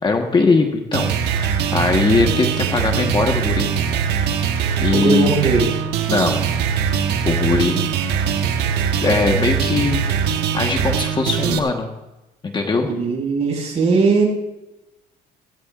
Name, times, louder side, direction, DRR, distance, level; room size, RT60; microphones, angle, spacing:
voice 1, 0.0-3.7 4.8-5.3 6.1-6.4 7.2-7.9 9.0-10.0 10.5-11.9 12.4-12.9, left 4 dB, 25° left, 3 dB, 1.3 m, -20 dB
sound 1, 0.9-11.6, right 7 dB, 85° right, 1.2 m, -21 dB
voice 2, 4.9-5.7 12.8-14.2, right 4 dB, 40° right, -2 dB, 5.5 m, -18 dB
17.5 x 16.5 x 2.5 m, 0.99 s
cardioid pair, 110°, 17 cm